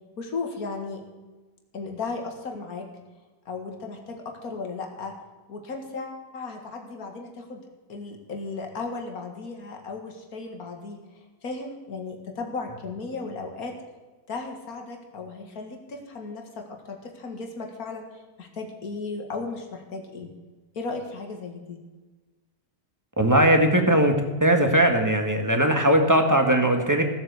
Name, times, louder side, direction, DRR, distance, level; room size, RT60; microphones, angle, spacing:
voice 1, 0.2-1.0 1.7-2.9 3.5-5.1 5.5-7.6 7.9-11.0 11.4-13.7 14.3-20.3 20.7-21.8, left 4 dB, 70° left, 2 dB, 2.3 m, -35 dB
voice 2, 23.2-24.1 24.4-27.0, right 1 dB, 10° right, 4 dB, 1.6 m, -19 dB
16.5 x 7.9 x 8.1 m, 1.2 s
omnidirectional pair, 1.6 m